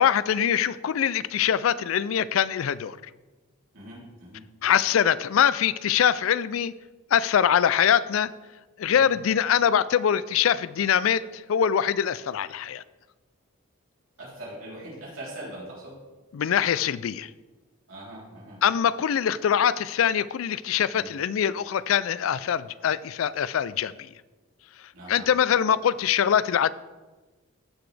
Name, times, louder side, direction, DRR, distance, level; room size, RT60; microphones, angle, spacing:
voice 1, 0.0-3.0 4.6-6.7 7.1-8.3 8.8-12.8 16.3-17.3 18.6-23.9 25.1-26.7, left 8 dB, 70° left, 17 dB, 0.4 m, -23 dB
voice 2, 3.7-4.4 8.9-9.1 14.2-15.9 17.9-18.6 20.9-21.1 24.9-25.2, right 1 dB, 80° right, -7 dB, 3.5 m, -41 dB
15.0 x 6.0 x 3.3 m, 1.2 s
head